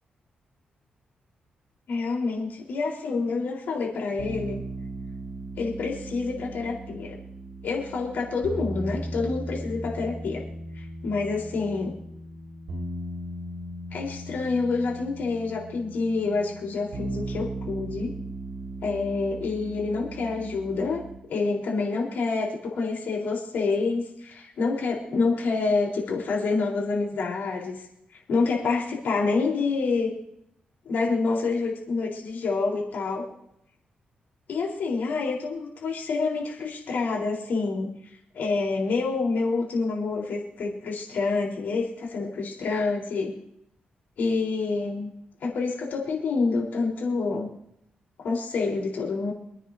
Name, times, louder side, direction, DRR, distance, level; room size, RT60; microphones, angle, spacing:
voice 1, 1.9-4.6 5.6-7.2 7.6-10.4 11.0-11.9 13.9-18.1 18.8-21.0 21.3-27.8 28.3-30.1 30.8-33.3 34.5-37.9 38.3-43.3 44.2-45.1 45.4-47.5 48.2-49.3, left 4 dB, 80° left, -2 dB, 4.2 m, -27 dB
sound 1, 4.2-21.2, right 1 dB, 65° right, 4.6 m, -37 dB
27.5 x 9.9 x 2.8 m, 0.78 s
cardioid pair, 90°, 3 cm